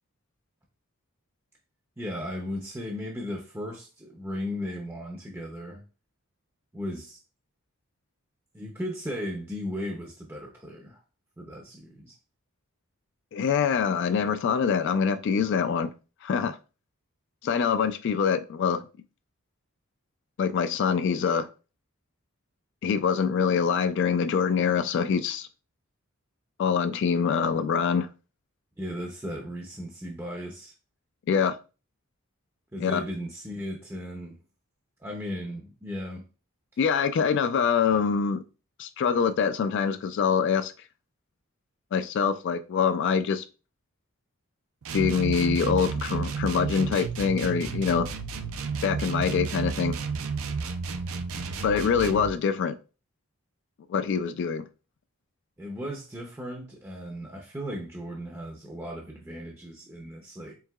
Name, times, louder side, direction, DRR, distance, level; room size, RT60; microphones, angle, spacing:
voice 1, 2.0-5.8 6.7-7.2 8.5-11.0 11.4-12.2 28.8-30.7 32.7-34.4 35.0-36.2 55.6-60.6, equal, 10° right, 0.5 m, -36 dB
voice 2, 13.3-15.9 16.2-16.6 17.4-18.8 20.4-21.5 22.8-25.5 26.6-28.1 31.3-31.6 32.8-33.0 36.8-38.4 38.8-40.7 41.9-43.4 44.9-48.1 48.8-49.9 51.6-52.7 53.9-54.7, left 6 dB, 55° left, 0.3 m, -25 dB
sound 1, 44.8-52.3, right 5 dB, 75° right, 0.5 m, -32 dB
4.6 x 3.6 x 2.3 m
head